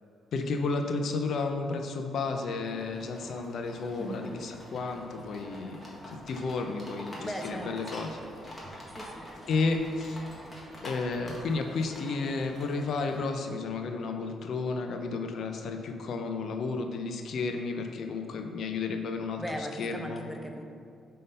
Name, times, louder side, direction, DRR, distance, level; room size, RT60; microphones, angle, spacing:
voice 1, 0.3-5.8 6.1-8.2 9.5-10.2 10.8-20.2, left 3 dB, 65° left, 5 dB, 0.5 m, -32 dB
sound 1, 2.6-13.2, equal, 20° left, 1.4 m, -46 dB
voice 2, 4.0-4.4 7.2-8.1 8.9-9.5 19.4-20.6, equal, ahead, 3 dB, 0.6 m, -39 dB
5.4 x 3.8 x 5.3 m, 2.4 s
cardioid pair, 90°, 0 cm